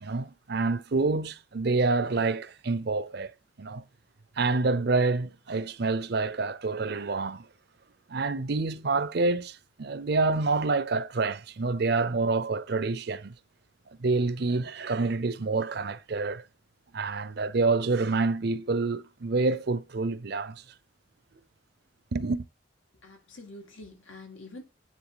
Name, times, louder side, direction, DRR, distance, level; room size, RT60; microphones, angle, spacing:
voice 1, 0.0-3.3 3.6-3.8 4.4-7.5 8.1-13.3 14.0-16.4 16.9-20.6 22.1-22.4, right 3 dB, 55° right, 0.6 m, -27 dB
voice 2, 23.0-24.6, left 2 dB, 85° left, 2.2 m, -46 dB
9.5 x 3.7 x 5.0 m
head